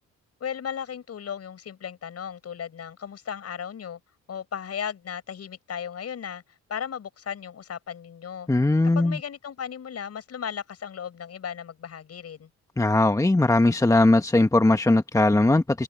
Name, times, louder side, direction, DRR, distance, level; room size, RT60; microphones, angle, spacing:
voice 1, 0.4-4.0 4.3-6.4 6.7-8.5 8.8-12.5, left 8 dB, 55° left, 6.0 m, -35 dB
voice 2, 8.5-9.2 12.8-15.8, left 2 dB, 10° left, 1.3 m, -19 dB
cardioid pair, 90°, 30 cm